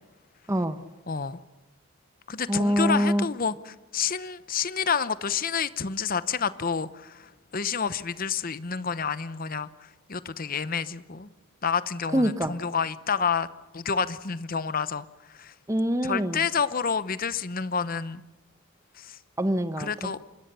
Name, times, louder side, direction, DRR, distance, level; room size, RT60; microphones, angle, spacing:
voice 1, 0.5-0.8 2.5-3.3 12.1-12.6 15.7-16.4 19.4-20.1, equal, 15° right, 10 dB, 0.9 m, -25 dB
voice 2, 1.1-1.4 2.3-9.7 10.1-11.3 11.6-13.5 13.7-15.1 15.3-15.5 16.0-18.2 19.0-19.2 19.8-20.2, left 6 dB, 40° left, 15 dB, 0.8 m, -29 dB
25.5 x 21.0 x 6.9 m, 1.1 s
head